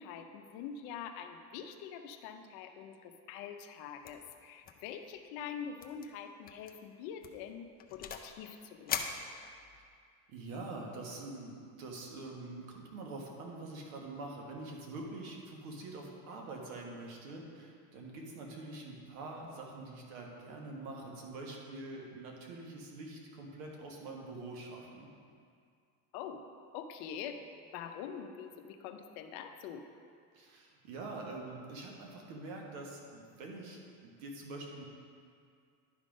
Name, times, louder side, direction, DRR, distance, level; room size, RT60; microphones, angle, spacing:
voice 1, 0.0-9.1 26.1-26.4 26.7-27.4 27.7-29.8, left 7 dB, 70° left, 7 dB, 0.7 m, -44 dB
sound 1, 4.0-4.3 4.6-4.9 5.2-5.3 5.8-6.1 6.5-6.7 7.2-8.4 8.9-9.9, left 7 dB, 25° left, 0.4 m, -40 dB
voice 2, 10.3-25.1 30.3-34.8, right 2 dB, 90° right, 0 dB, 1.5 m, -45 dB
11.0 x 3.7 x 5.1 m, 2.3 s
cardioid pair, 130°, 40 cm